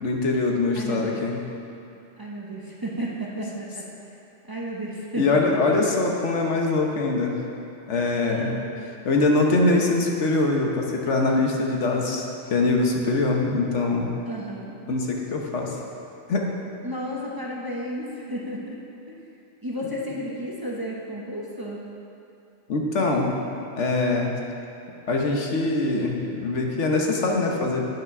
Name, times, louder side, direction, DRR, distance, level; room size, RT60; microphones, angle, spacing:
voice 1, 0.0-1.4 5.2-7.4 7.9-8.5 9.0-14.1 14.9-15.8 16.3-16.5 22.7-23.3 23.7-24.3 25.1-27.9, left 3 dB, 75° left, 0 dB, 1.3 m, -23 dB
voice 2, 0.7-1.2 2.2-3.9 4.5-5.4 8.2-8.7 14.3-14.8 16.8-18.8 19.1-19.2 19.6-21.8, right 1 dB, 20° right, -4 dB, 0.8 m, -33 dB
9.0 x 5.8 x 6.0 m, 2.7 s
omnidirectional pair, 1.2 m